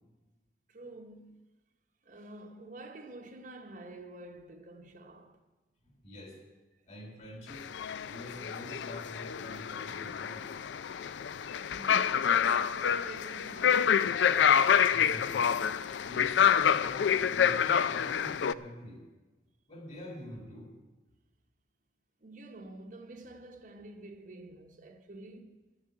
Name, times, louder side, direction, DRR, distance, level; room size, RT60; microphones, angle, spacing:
voice 1, 0.7-1.4 2.0-5.4 11.6-14.2 22.2-25.6, right 2 dB, 45° right, 0.9 m, -48 dB
voice 2, 5.8-6.4 6.9-7.7 8.1-10.5 14.9-15.6 16.0-19.0 19.7-20.8, left 1 dB, 40° left, 3.3 m, -46 dB
sound 1, 7.5-18.5, left 8 dB, 80° left, 0.4 m, -27 dB
12.0 x 7.3 x 9.6 m
head